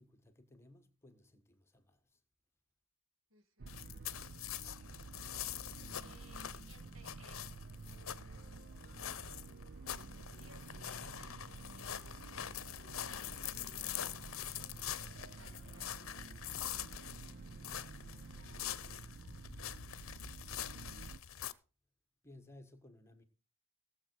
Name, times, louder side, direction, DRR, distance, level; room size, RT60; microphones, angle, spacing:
voice 1, 0.0-2.2 22.2-23.2, left 1 dB, 10° left, 1.6 m, -59 dB
voice 2, 3.3-3.9 6.0-7.6 9.9-16.7, right 2 dB, 65° right, 1.7 m, -65 dB
sound 1, 3.6-21.2, right 3 dB, 50° right, 0.5 m, -50 dB
sound 2, 3.7-21.5, left 11 dB, 70° left, 0.8 m, -45 dB
18.0 x 7.6 x 4.7 m
head